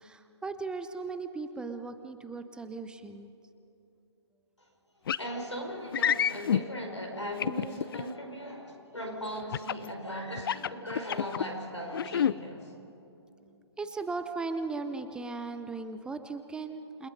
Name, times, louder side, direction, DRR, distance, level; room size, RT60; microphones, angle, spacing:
voice 1, 0.0-3.3 13.4-17.1, right 4 dB, 5° right, 9 dB, 0.6 m, -37 dB
voice 2, 5.0-12.7, equal, 90° left, 2 dB, 5.2 m, -38 dB
sound 1, 5.1-5.3 5.9-6.6 7.4-8.0 9.5-9.9 10.4-11.4 11.9-12.3, left 9 dB, 55° left, 0.5 m, -28 dB
28.5 x 21.0 x 5.4 m, 2.9 s
figure-of-eight pair, 135°, 14 cm